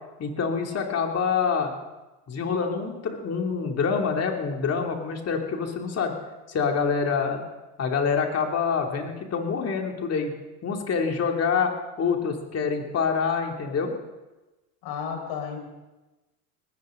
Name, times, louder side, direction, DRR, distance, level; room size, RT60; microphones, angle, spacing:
voice 1, 0.2-1.7 2.3-6.1 6.5-7.4 7.8-10.3 10.6-13.9, left 5 dB, 35° left, 2 dB, 3.1 m, -26 dB
voice 2, 14.8-15.6, left 7 dB, 55° left, 2 dB, 5.3 m, -32 dB
19.5 x 15.5 x 4.0 m, 1.1 s
hypercardioid pair, 95°, 44 cm